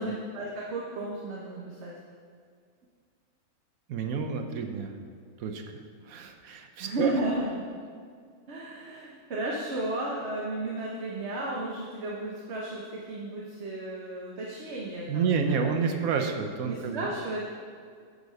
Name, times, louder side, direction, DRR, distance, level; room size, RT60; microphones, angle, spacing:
voice 1, 0.0-1.9 6.8-7.6 8.5-16.0 16.6-17.4, right 2 dB, 55° right, -3 dB, 1.2 m, -34 dB
voice 2, 3.9-4.9 5.4-7.1 15.1-17.1, right 6 dB, 80° right, 5 dB, 1.2 m, -29 dB
9.7 x 4.0 x 6.5 m, 2.1 s
omnidirectional pair, 1.5 m